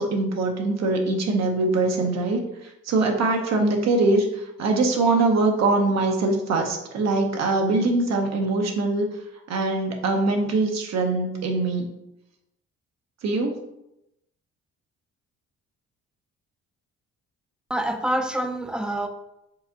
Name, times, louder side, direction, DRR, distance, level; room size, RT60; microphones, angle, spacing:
voice 1, 0.0-9.1 9.5-11.9 13.2-13.6, right 2 dB, 60° right, 2 dB, 0.7 m, -23 dB
voice 2, 17.7-19.1, right 1 dB, 5° right, 5 dB, 0.4 m, -26 dB
4.7 x 3.4 x 2.7 m, 0.86 s
cardioid pair, 90°, 30 cm